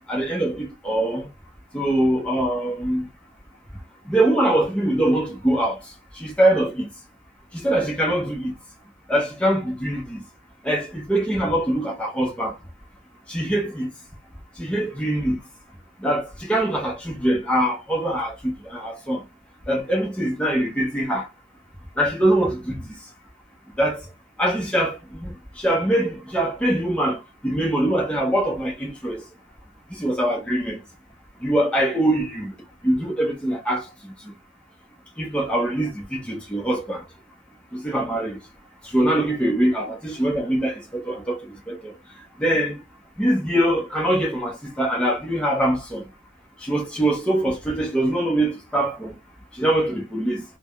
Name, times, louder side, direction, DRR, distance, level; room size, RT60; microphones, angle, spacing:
voice 1, 0.1-1.3 1.7-3.1 4.1-5.8 6.2-6.9 7.5-8.5 9.1-10.2 10.6-12.6 13.3-13.9 14.6-15.4 16.0-19.2 19.7-21.3 22.0-23.0 23.8-24.0 24.4-29.2 29.9-30.8 31.4-32.5 32.8-33.8 35.2-37.0 37.7-38.4 38.9-41.9 42.4-42.8 43.2-46.1 46.6-49.1 49.5-50.4, right 1 dB, 5° left, 0.6 m, -23 dB
3.4 x 2.1 x 2.2 m
head